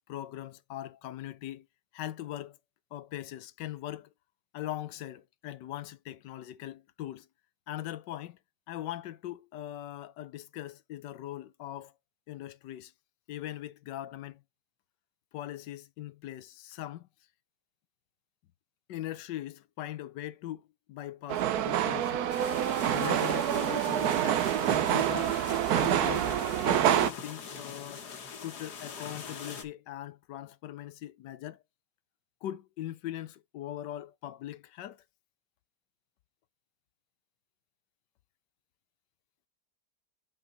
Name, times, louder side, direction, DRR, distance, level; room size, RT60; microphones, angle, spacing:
voice 1, 0.1-1.7 1.9-2.6 2.9-4.1 4.5-7.3 7.7-8.4 8.7-11.9 12.3-12.9 13.3-14.4 15.3-17.1 18.9-22.3 22.9-25.3 25.7-28.0 28.4-31.6 32.4-35.0, left 13 dB, 90° left, 1.3 m, -40 dB
sound 1, 21.3-27.1, right 11 dB, 70° right, 1.1 m, -27 dB
sound 2, 22.3-29.6, left 6 dB, 70° left, 1.9 m, -43 dB
7.3 x 5.6 x 3.9 m
omnidirectional pair, 1.8 m